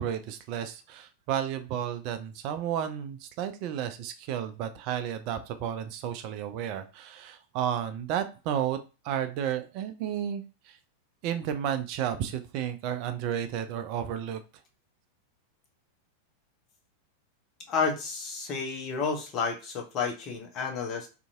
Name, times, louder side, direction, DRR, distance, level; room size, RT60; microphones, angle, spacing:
voice 1, 0.0-8.8 9.0-10.8 11.2-14.4, right 9 dB, 45° right, 8 dB, 0.3 m, -32 dB
voice 2, 17.7-21.1, left 5 dB, 35° left, 1 dB, 0.7 m, -31 dB
2.8 x 2.5 x 2.4 m, 0.31 s
figure-of-eight pair, 90°, 0 cm